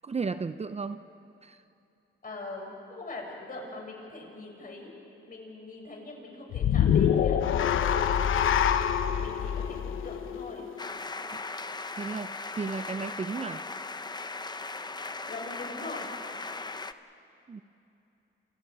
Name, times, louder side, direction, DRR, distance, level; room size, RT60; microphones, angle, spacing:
voice 1, 0.0-1.0 1.4-1.6 12.0-13.6 17.5-17.6, right 4 dB, 30° right, 10 dB, 0.7 m, -34 dB
voice 2, 2.2-4.9 5.3-7.4 9.2-10.7 15.3-16.1, left 2 dB, 45° left, 0 dB, 7.1 m, -42 dB
sound 1, 6.5-10.9, left 9 dB, 75° left, 1.0 m, -25 dB
sound 2, 10.8-16.9, left 3 dB, 20° left, 0.8 m, -38 dB
29.0 x 29.0 x 4.9 m, 2.8 s
cardioid pair, 85°, 21 cm